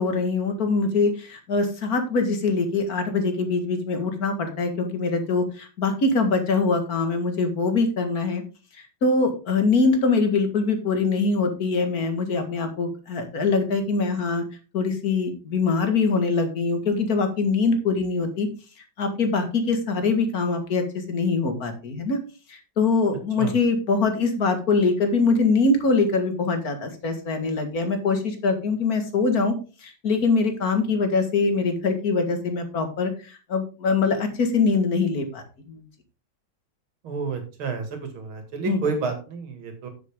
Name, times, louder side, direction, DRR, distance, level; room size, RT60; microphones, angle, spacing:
voice 1, 0.0-8.4 9.0-14.4 14.7-18.5 19.0-22.2 22.5-29.5 29.8-35.8 38.7-38.8, left 4 dB, 45° left, 6 dB, 2.1 m, -23 dB
voice 2, 37.0-39.9, right 4 dB, 80° right, 6 dB, 3.0 m, -30 dB
9.7 x 8.1 x 3.6 m, 0.33 s
omnidirectional pair, 2.3 m